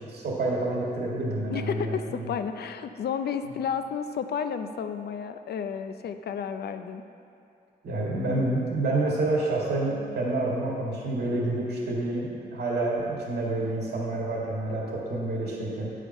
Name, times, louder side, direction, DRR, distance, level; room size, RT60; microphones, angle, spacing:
voice 1, 0.1-2.3 7.8-15.9, right 2 dB, 85° right, -4 dB, 1.9 m, -28 dB
voice 2, 1.5-7.0, left 7 dB, 75° left, 9 dB, 0.5 m, -32 dB
9.5 x 5.0 x 5.4 m, 2.4 s
wide cardioid pair, 170°, 17 cm